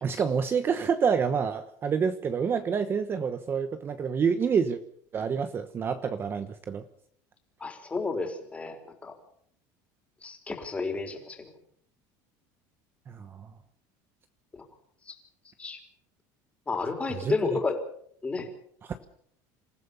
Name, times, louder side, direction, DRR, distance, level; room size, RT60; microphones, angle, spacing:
voice 1, 0.0-4.8 5.1-6.8 13.1-13.5 17.1-17.3 18.8-19.0, right 6 dB, 25° right, 10 dB, 1.2 m, -28 dB
voice 2, 7.6-9.1 10.2-11.5 14.5-14.6 15.1-15.2 15.6-15.8 16.7-17.8 18.2-18.5, left 3 dB, 15° left, 4 dB, 4.1 m, -31 dB
27.5 x 15.5 x 7.0 m, 0.66 s
cardioid pair, 150°, 9 cm